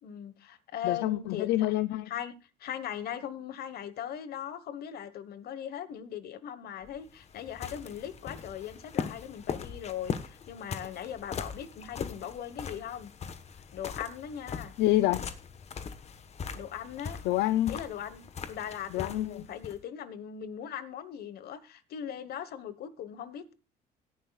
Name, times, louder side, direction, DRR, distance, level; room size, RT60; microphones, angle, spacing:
voice 1, 0.0-1.7 2.1-2.3 2.6-13.1 13.7-14.7 16.5-17.2 17.7-23.5, left 9 dB, 65° left, 1.3 m, -39 dB
voice 2, 0.8-2.1 14.8-15.2 17.2-17.8 18.9-19.4, left 15 dB, 85° left, 0.5 m, -27 dB
sound 1, 6.8-19.8, left 6 dB, 40° left, 1.2 m, -40 dB
17.0 x 10.0 x 2.4 m
cardioid pair, 110°, 17 cm